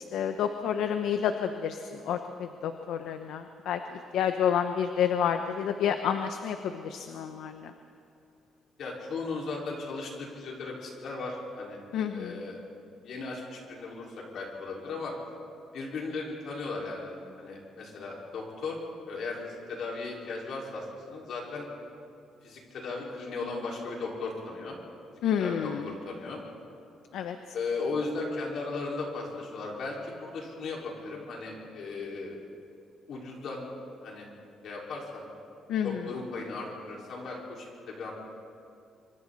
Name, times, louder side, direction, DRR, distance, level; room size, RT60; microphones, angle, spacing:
voice 1, 0.0-3.8 4.1-7.7 11.9-12.4 25.2-25.8 27.1-27.4 35.7-36.0, left 8 dB, 85° left, 7 dB, 1.0 m, -29 dB
voice 2, 8.8-11.8 12.1-12.6 13.0-15.1 15.7-18.8 19.1-21.7 22.4-24.8 25.4-26.4 27.5-32.4 33.1-33.6 34.0-34.3 34.6-35.2 35.8-38.1, left 3 dB, 60° left, -2 dB, 5.0 m, -36 dB
25.5 x 25.0 x 4.2 m, 2.6 s
cardioid pair, 140°, 0 cm